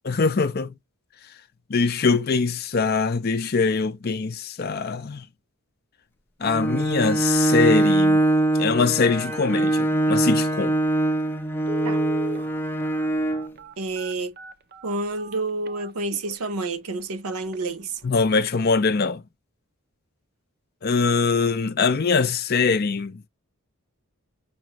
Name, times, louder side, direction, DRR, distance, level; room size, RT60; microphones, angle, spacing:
voice 1, 0.0-0.7 1.7-5.3 6.4-8.2 8.6-10.7 18.0-19.2 20.8-23.2, left 4 dB, 45° left, 0.5 m, -22 dB
Bowed string instrument, 6.4-13.5, right 2 dB, 10° left, 0.7 m, -22 dB
Telephone, 11.7-16.5 17.0-17.1 17.5-17.6 18.0-18.3 18.6-18.7, equal, 45° right, 0.6 m, -38 dB
voice 2, 13.8-14.3 14.8-18.0, right 3 dB, 80° right, 0.7 m, -29 dB
5.9 x 2.9 x 2.9 m
head